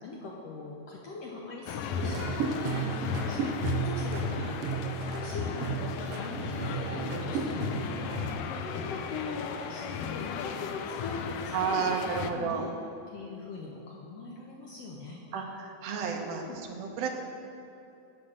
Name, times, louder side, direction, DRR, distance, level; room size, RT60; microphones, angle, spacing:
voice 1, 0.0-12.7 13.1-15.2 16.0-16.6, left 3 dB, 70° left, -2 dB, 1.5 m, -42 dB
sound 1, 1.7-12.3, left 6 dB, 85° left, 1.5 m, -36 dB
sound 2, 1.9-8.3, right 5 dB, 85° right, 1.4 m, -34 dB
voice 2, 11.5-12.6 15.3-16.4 16.7-17.1, right 6 dB, 65° right, 1 dB, 1.8 m, -31 dB
8.4 x 7.3 x 6.5 m, 2.8 s
omnidirectional pair, 3.7 m